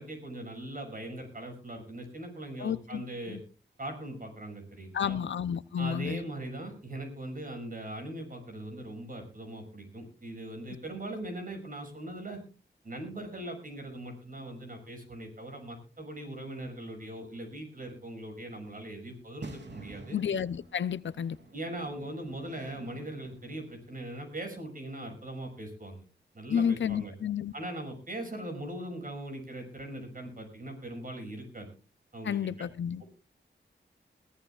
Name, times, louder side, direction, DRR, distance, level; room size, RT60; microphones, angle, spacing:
voice 1, 0.0-3.4 3.8-5.2 5.8-12.4 12.8-20.2 21.5-26.0 26.3-27.1 27.5-31.7 32.1-32.7, right 1 dB, 45° right, 6.4 m, -40 dB
voice 2, 2.6-3.4 4.9-6.2 20.1-21.4 26.5-27.5 32.2-33.0, left 8 dB, 80° left, 0.6 m, -31 dB
sound 1, 19.4-23.8, right 2 dB, 70° right, 2.9 m, -49 dB
21.5 x 15.5 x 2.4 m
wide cardioid pair, 80°, 19 cm